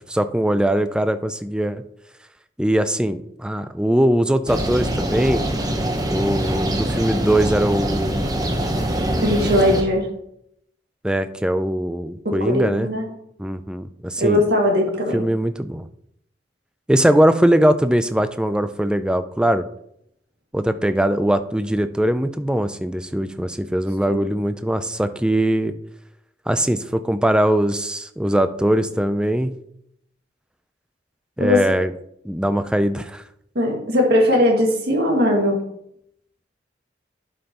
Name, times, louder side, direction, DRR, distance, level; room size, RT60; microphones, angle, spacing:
voice 1, 0.1-1.8 2.6-5.4 6.1-8.2 11.0-12.9 13.4-14.4 15.1-15.9 16.9-19.6 20.5-25.7 26.5-29.5 31.4-31.9 32.2-33.2, right 1 dB, 5° right, 10 dB, 0.3 m, -21 dB
sound 1, 4.5-9.8, right 1 dB, 20° right, 0.9 m, -24 dB
voice 2, 9.2-10.1 12.3-13.1 14.2-15.2 24.1-24.2 31.4-31.6 33.6-35.6, left 1 dB, 60° right, 0 dB, 2.0 m, -19 dB
11.5 x 5.4 x 2.9 m, 0.74 s
head